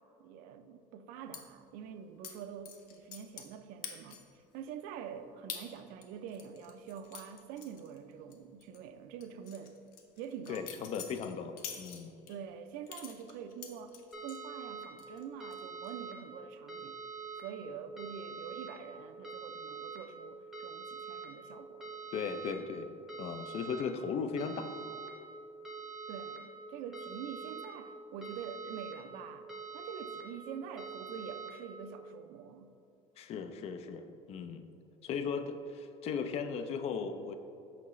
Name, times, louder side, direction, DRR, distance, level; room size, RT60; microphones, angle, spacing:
voice 1, 0.2-9.7 10.2-10.6 12.3-14.0 14.2-17.0 17.4-21.9 26.1-29.5 29.7-32.7, right 7 dB, 85° right, 9 dB, 0.4 m, -46 dB
sound 1, 1.3-1.4 2.2-2.3 2.7-3.5 3.8-4.4 4.8-4.9 5.5-5.6 6.0-8.3 8.6-8.8 9.2-12.3 12.9-14.4 14.8-15.2 15.5-15.9, left 7 dB, 80° left, 0.7 m, -46 dB
voice 2, 10.5-12.1 22.1-22.9 23.2-24.7 33.2-34.6 35.0-37.4, left 6 dB, 45° left, 8 dB, 0.4 m, -37 dB
sound 2, 14.1-14.9 15.4-16.1 16.7-17.4 18.0-18.7 19.2-20.0 20.5-21.3 21.8-22.5 23.1-23.8 24.4-25.1 25.6-26.4 26.9-27.7 28.2-28.9 29.5-30.2 30.8-31.5, right 5 dB, 5° right, 0.7 m, -44 dB
5.8 x 5.7 x 3.1 m, 2.7 s
cardioid pair, 140°, 14 cm